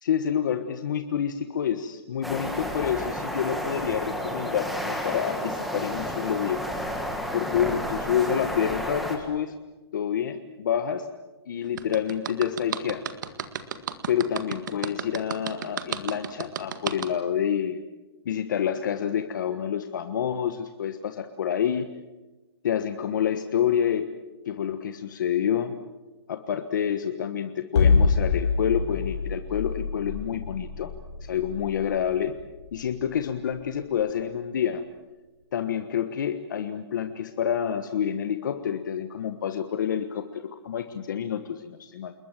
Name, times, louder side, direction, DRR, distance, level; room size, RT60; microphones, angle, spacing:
voice 1, 0.0-6.6 7.3-9.5 9.9-11.1 11.5-13.0 14.1-17.8 18.2-21.9 22.6-24.0 24.4-25.7 26.3-30.9 31.2-32.3 32.7-34.8 35.5-42.1, left 9 dB, 45° left, 8 dB, 1.3 m, -28 dB
sound 1, 2.2-9.2, equal, ahead, 1.8 m, -31 dB
sound 2, 11.8-17.1, right 8 dB, 45° right, 1.8 m, -32 dB
sound 3, 27.8-33.9, left 5 dB, 80° left, 5.0 m, -25 dB
28.5 x 21.5 x 7.5 m, 1.1 s
hypercardioid pair, 180°, 14 cm